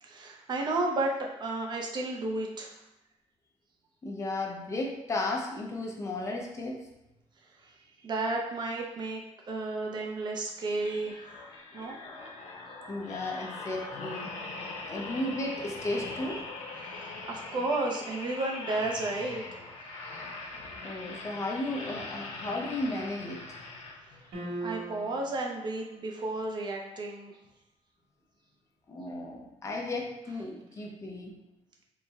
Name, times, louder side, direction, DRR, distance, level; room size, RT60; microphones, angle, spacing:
voice 1, 0.0-2.8 8.0-9.2 9.5-11.2 11.7-11.9 16.8-19.6 24.4-27.3, right 2 dB, 40° right, 1 dB, 0.5 m, -32 dB
voice 2, 4.0-6.9 11.8-12.1 12.9-14.3 14.9-16.5 20.8-23.4 28.9-31.3, left 2 dB, 25° left, -1 dB, 0.6 m, -34 dB
sound 1, 10.7-24.3 24.9-25.1, left 3 dB, 85° left, 0.7 m, -41 dB
sound 2, 24.3-25.4, right 2 dB, 80° right, 1.2 m, -38 dB
4.5 x 2.1 x 3.3 m, 0.91 s
wide cardioid pair, 165°, 11 cm